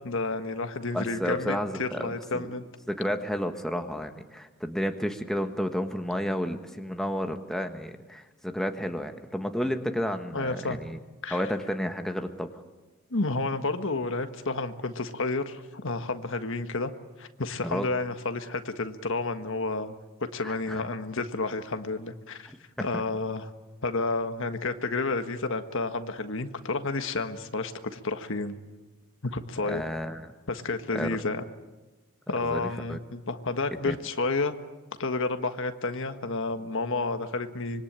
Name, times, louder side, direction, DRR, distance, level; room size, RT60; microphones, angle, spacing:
voice 1, 0.0-2.6 10.3-10.8 11.2-11.4 13.1-16.9 17.2-19.9 20.3-22.5 22.8-23.5 23.8-28.6 29.3-29.8 30.5-31.4 32.3-34.5 35.0-37.8, left 3 dB, 60° left, 8 dB, 1.6 m, -30 dB
voice 2, 0.9-2.5 2.9-11.0 11.3-12.5 17.6-17.9 20.4-20.8 22.5-23.0 29.6-30.3 30.9-31.2 32.4-33.0 33.8-34.0, equal, ahead, 5 dB, 1.4 m, -31 dB
25.5 x 23.0 x 8.8 m, 1.2 s
head